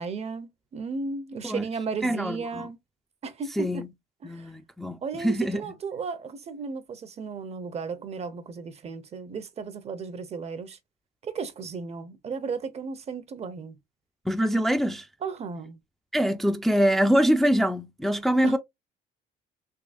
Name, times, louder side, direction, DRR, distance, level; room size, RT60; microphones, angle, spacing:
voice 1, 0.0-2.8 3.2-3.8 4.2-4.5 5.0-10.8 11.2-13.8 15.2-15.8 18.4-18.5, right 5 dB, 40° right, 0.7 m, -34 dB
voice 2, 2.0-2.7 3.6-3.9 4.2-5.6 14.3-15.1 16.1-18.6, equal, ahead, 0.4 m, -24 dB
3.6 x 2.9 x 2.5 m
cardioid pair, 110°, 17 cm